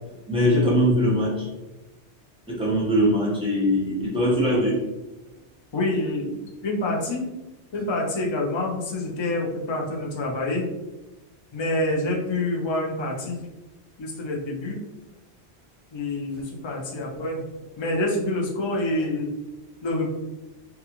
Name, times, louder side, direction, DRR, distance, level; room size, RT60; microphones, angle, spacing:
voice 1, 0.3-1.5 2.5-4.8, equal, 5° right, -6 dB, 0.6 m, -21 dB
voice 2, 5.7-7.3 7.7-10.7 11.5-13.4 14.0-14.8 15.9-17.4 17.8-19.3 19.8-20.1, left 2 dB, 50° left, -1 dB, 0.3 m, -27 dB
2.3 x 2.3 x 2.8 m, 1.0 s
omnidirectional pair, 1.1 m